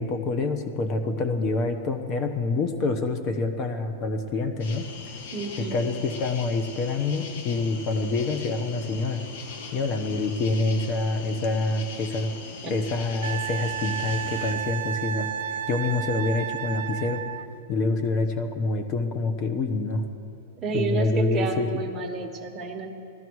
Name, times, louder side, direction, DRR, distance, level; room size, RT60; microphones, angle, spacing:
voice 1, 0.0-4.9 5.6-9.2 9.7-12.3 12.7-15.3 15.7-17.2 17.7-20.0 20.7-21.7, left 3 dB, 35° left, 7 dB, 1.1 m, -26 dB
sound 1, 4.6-14.5, left 5 dB, 60° left, 1.7 m, -40 dB
voice 2, 5.3-5.7 12.6-12.7 20.6-22.9, right 4 dB, 20° right, 2 dB, 1.4 m, -30 dB
Wind instrument woodwind instrument, 13.2-17.5 20.2-20.3, right 10 dB, 70° right, 0.8 m, -32 dB
18.5 x 13.5 x 4.8 m, 2.6 s
supercardioid pair, 150°, 0 cm